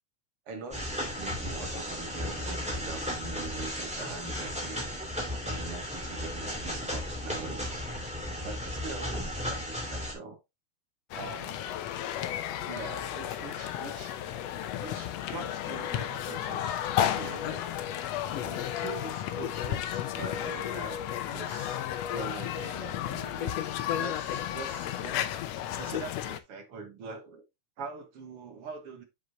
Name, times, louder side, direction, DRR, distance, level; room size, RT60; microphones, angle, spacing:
voice 1, 0.5-4.9 5.4-7.9 8.4-10.4 11.1-11.7 12.6-14.2 14.8-16.7 17.1-17.7 18.3-21.9 22.1-23.6 23.9-25.3 25.7-27.4 27.8-29.0, right 4 dB, 55° right, 2.1 m, -43 dB
sound 1, 0.7-10.1, left 1 dB, ahead, 2.5 m, -35 dB
sound 2, 11.1-26.4, left 11 dB, 75° left, 1.7 m, -33 dB
7.6 x 6.5 x 2.9 m
omnidirectional pair, 3.4 m